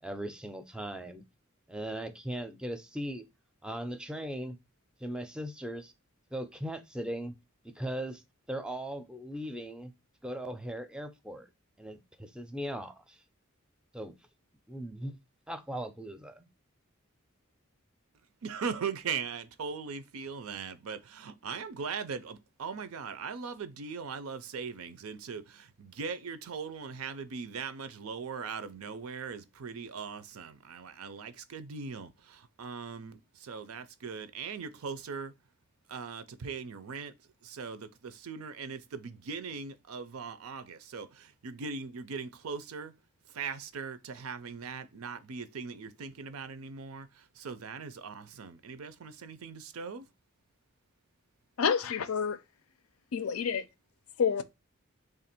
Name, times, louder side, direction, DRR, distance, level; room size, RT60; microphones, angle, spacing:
voice 1, 0.0-1.2 1.7-3.3 3.6-4.6 5.0-5.9 6.3-7.3 7.6-8.2 8.5-9.9 10.2-11.5 11.8-13.2 13.9-14.1 14.7-15.2 15.5-16.5, right 1 dB, 5° right, 0.4 m, -38 dB
voice 2, 18.4-35.3 35.9-37.1 37.4-42.9 43.3-50.1, right 5 dB, 85° right, 0.5 m, -40 dB
voice 3, 51.6-52.4 53.1-53.6 54.2-54.4, left 6 dB, 85° left, 0.5 m, -28 dB
3.2 x 2.5 x 4.2 m
head